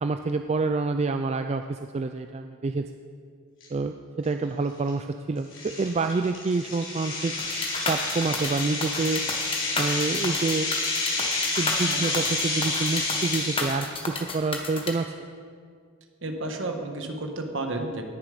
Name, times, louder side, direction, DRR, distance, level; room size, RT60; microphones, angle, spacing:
voice 1, 0.0-2.9 3.7-7.4 7.9-9.3 9.8-10.7 11.6-15.1, right 3 dB, 30° right, 7 dB, 0.3 m, -27 dB
sound 1, 3.6-3.7 4.3-4.4 4.9-5.0 5.5-13.8, left 3 dB, 60° left, 3.8 m, -29 dB
sound 2, 7.4-14.9, left 3 dB, 25° left, 1.2 m, -32 dB
voice 2, 16.2-18.0, right 2 dB, 60° right, 4 dB, 1.4 m, -31 dB
18.5 x 7.2 x 5.1 m, 2.1 s
head